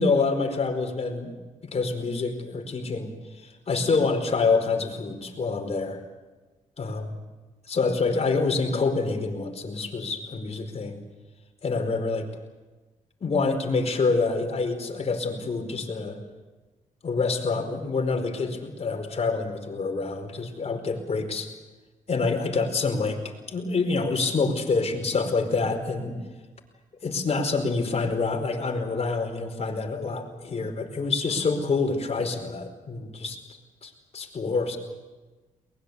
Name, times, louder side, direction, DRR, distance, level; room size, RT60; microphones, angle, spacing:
voice 1, 0.0-1.3 1.6-6.0 6.8-7.2 7.7-11.0 11.6-12.3 13.2-16.2 17.0-21.5 22.1-23.2 23.5-26.2 27.0-33.4 33.8-34.8, left 4 dB, 50° left, 4 dB, 4.7 m, -27 dB
22.5 x 21.0 x 8.3 m, 1.2 s
cardioid pair, 75°, 14 cm